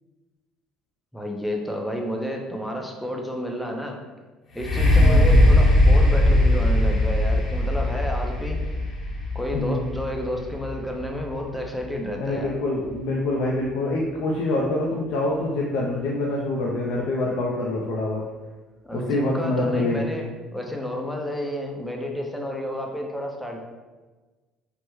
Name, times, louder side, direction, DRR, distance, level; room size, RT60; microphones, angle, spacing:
voice 1, 1.1-4.0 4.5-8.6 9.3-12.5 18.8-23.6, left 1 dB, 5° left, 1 dB, 0.6 m, -30 dB
sound 1, 4.5-12.3 12.9-13.0, left 1 dB, 45° left, 0.7 m, -20 dB
voice 2, 5.0-5.4 9.5-9.9 12.1-18.2 18.9-20.1, left 2 dB, 80° left, -3 dB, 0.4 m, -25 dB
3.3 x 2.1 x 3.0 m, 1.3 s
supercardioid pair, 95°, 0 cm